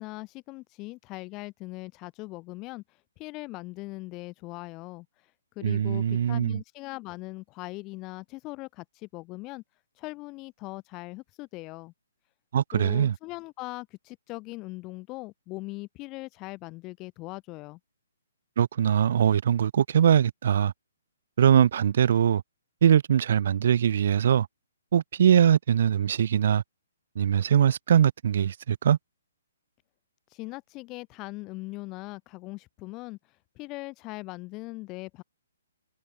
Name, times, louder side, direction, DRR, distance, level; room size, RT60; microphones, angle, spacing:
voice 1, 0.0-9.6 9.9-11.9 12.7-17.8 30.3-35.2, left 22 dB, 25° left, 2.7 m, -40 dB
voice 2, 5.6-6.5 12.5-13.1 18.6-20.7 21.4-22.4 22.8-24.5 24.9-26.6 27.1-29.0, right 9 dB, 55° right, 2.8 m, -22 dB
hypercardioid pair, 135°, 0 cm